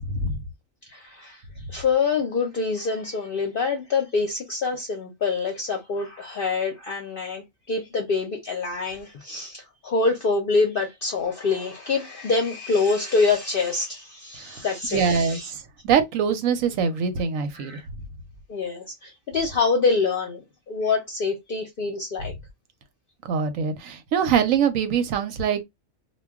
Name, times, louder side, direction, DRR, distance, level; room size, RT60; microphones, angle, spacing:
voice 1, 0.1-0.4 14.3-14.6 14.9-17.8 23.3-25.6, right 6 dB, 90° right, 1.0 m, -23 dB
voice 2, 0.9-15.5 17.5-17.9 18.5-22.3, left 4 dB, 55° left, 0.6 m, -26 dB
2.2 x 2.2 x 3.4 m
omnidirectional pair, 1.4 m